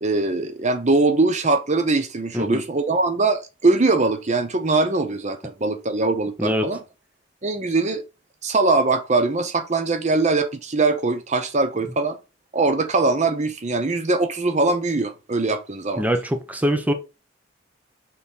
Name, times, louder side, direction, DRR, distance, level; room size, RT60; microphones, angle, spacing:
voice 1, 0.0-6.8 7.4-8.0 8.4-12.2 12.5-16.0, right 3 dB, 40° right, 0.8 m, -21 dB
voice 2, 16.0-16.9, equal, 10° right, 1.0 m, -23 dB
6.4 x 4.4 x 5.4 m
head